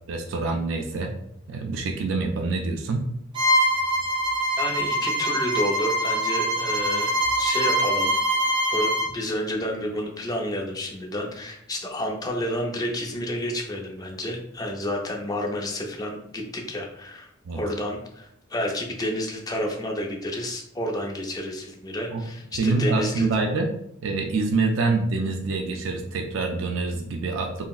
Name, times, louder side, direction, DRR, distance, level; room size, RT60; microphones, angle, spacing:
voice 1, 0.1-1.1 1.5-3.1 17.5-17.6 22.1-22.2 22.6-23.7 24.0-27.6, right 3 dB, 75° right, 3 dB, 0.4 m, -26 dB
Bowed string instrument, 3.3-9.1, equal, 25° right, 0.6 m, -24 dB
voice 2, 4.6-8.1 8.7-23.3, left 1 dB, 20° left, 0 dB, 0.5 m, -30 dB
3.8 x 2.1 x 2.3 m, 0.72 s
head